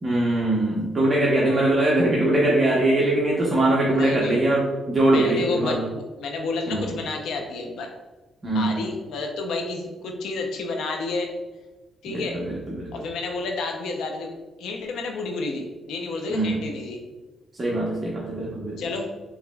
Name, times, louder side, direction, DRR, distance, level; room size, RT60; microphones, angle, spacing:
voice 1, 0.0-5.9 6.7-6.9 8.4-8.9 12.1-12.9 16.3-16.6 17.6-18.8, right 1 dB, 35° right, -5 dB, 0.8 m, -22 dB
voice 2, 3.9-4.5 5.1-7.9 8.5-11.3 12.0-12.4 12.9-17.0 18.8-19.1, left 3 dB, 85° left, 3 dB, 0.6 m, -30 dB
4.8 x 3.0 x 2.3 m, 1.2 s
cardioid pair, 90°, 0 cm